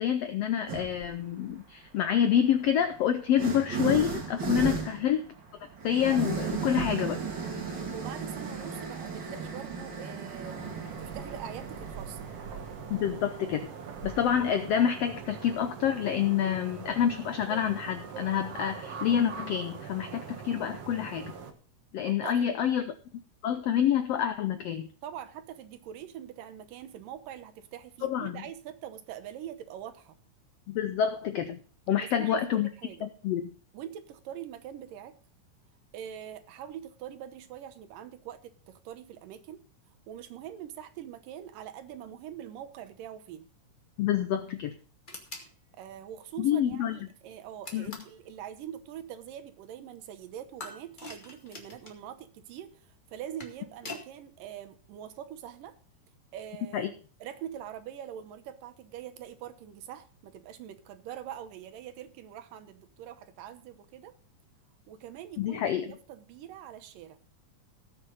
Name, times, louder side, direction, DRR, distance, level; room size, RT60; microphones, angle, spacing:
voice 1, 0.0-5.2 5.8-7.2 12.9-13.7 14.0-21.3 21.9-22.9 23.4-24.9 28.0-28.4 30.7-31.6 31.9-32.7 33.0-33.5 44.0-44.7 46.4-47.0 47.7-48.0 56.7-56.9 65.4-66.0, left 9 dB, 85° left, 9 dB, 1.4 m, -27 dB
sound 1, 0.7-1.1 2.1-15.6, right 5 dB, 35° right, 2.5 m, -36 dB
voice 2, 7.9-10.6 10.9-12.3 22.1-22.5 25.0-30.2 32.0-33.1 33.7-35.2 35.9-39.6 40.1-43.5 45.8-55.8 56.3-56.9 57.2-64.1 64.9-67.2, right 10 dB, 90° right, 10 dB, 2.7 m, -43 dB
sound 2, 10.4-21.5, right 6 dB, 55° right, 2.1 m, -43 dB
sound 3, 45.1-45.5 47.6-48.2 50.6-52.0 53.1-54.1, left 2 dB, 20° left, 1.5 m, -43 dB
18.5 x 6.7 x 3.9 m, 0.39 s
omnidirectional pair, 3.7 m